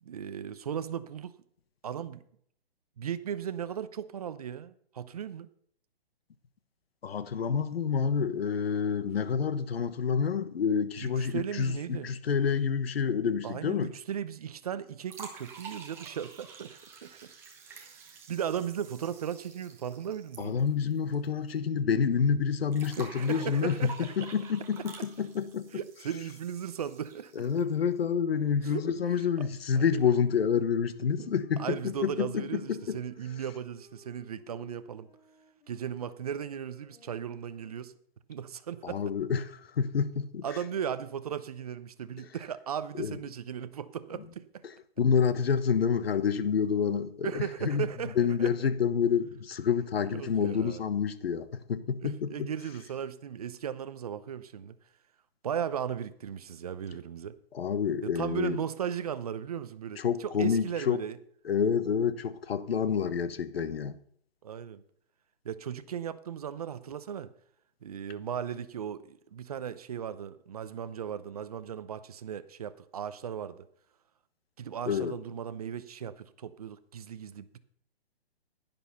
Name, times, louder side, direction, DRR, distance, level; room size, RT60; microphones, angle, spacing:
voice 1, 0.0-1.3 1.8-2.2 3.0-5.5 11.0-12.1 13.4-17.3 17.7-18.0 18.3-20.6 23.0-24.3 25.7-27.5 28.6-28.8 29.4-29.5 29.7-30.1 31.2-35.1 35.7-37.9 38.3-39.0 40.4-44.6 47.2-48.5 50.0-50.8 52.0-54.8 55.4-57.4 58.0-61.2 64.4-64.8 65.4-67.3 67.8-73.7 74.6-77.6, right 8 dB, 40° right, 0.7 m, -37 dB
voice 2, 7.0-13.9 20.4-25.7 27.3-33.0 38.8-40.4 43.0-43.2 45.0-47.8 48.2-52.5 57.5-58.6 60.0-61.0 61.4-64.0 74.9-75.1, left 6 dB, 70° left, 1.2 m, -28 dB
sound 1, 15.1-21.2 21.5-21.6 22.7-27.7, right 5 dB, 10° right, 1.0 m, -49 dB
Wind instrument woodwind instrument, 27.9-38.0, left 2 dB, 50° left, 6.6 m, -58 dB
11.0 x 10.5 x 5.6 m
hypercardioid pair, 165°, 31 cm